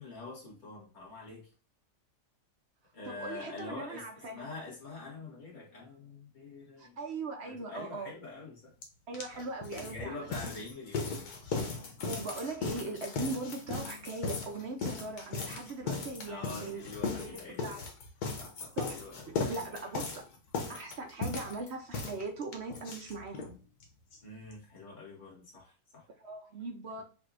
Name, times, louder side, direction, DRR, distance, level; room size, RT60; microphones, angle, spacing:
voice 1, 0.0-1.5 2.9-7.0 7.4-8.7 9.3-9.4 9.8-11.1 11.5-11.7 16.2-17.9 18.4-19.8 24.2-26.1 26.9-27.0, left 3 dB, 30° left, 1.9 m, -45 dB
voice 2, 3.1-4.5 6.8-8.1 9.1-10.3 12.0-16.9 17.2-17.9 18.8-19.0 19.3-20.2 20.7-23.6 26.2-27.0, right 3 dB, 55° right, 0.8 m, -40 dB
sound 1, 8.8-8.9 9.1-23.5 23.8-23.9 24.1-24.2 24.5-24.6, left 4 dB, 90° left, 1.5 m, -37 dB
5.6 x 2.7 x 2.5 m
omnidirectional pair, 1.6 m